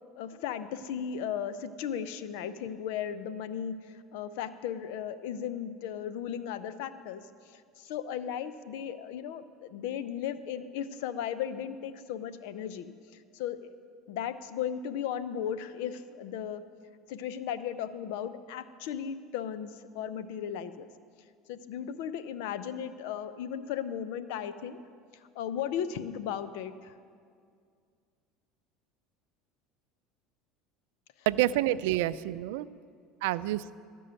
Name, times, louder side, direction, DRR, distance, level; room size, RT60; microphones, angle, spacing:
voice 1, 0.2-3.8 4.1-7.2 7.5-12.9 13.3-13.7 14.1-16.6 17.1-20.9 21.5-24.8 25.4-26.9, left 9 dB, 75° left, 13 dB, 0.6 m, -36 dB
voice 2, 31.3-32.7 33.2-33.7, right 15 dB, 80° right, 17 dB, 0.3 m, -28 dB
13.0 x 5.4 x 8.8 m, 2.2 s
supercardioid pair, 95°, 0 cm